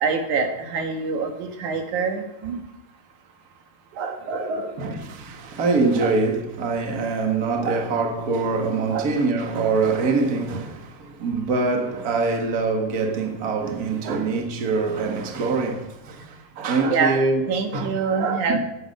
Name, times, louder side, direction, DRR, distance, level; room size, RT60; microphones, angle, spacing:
voice 1, 0.0-2.6 4.0-5.0 6.0-6.1 7.6-7.8 8.9-9.1 14.0-14.3 16.8-18.6, right 5 dB, 80° right, 2.9 m, -26 dB
voice 2, 4.8-17.5 17.7-17.9 18.5-18.6, right 3 dB, 35° right, 1.8 m, -24 dB
17.5 x 8.6 x 5.4 m
omnidirectional pair, 3.4 m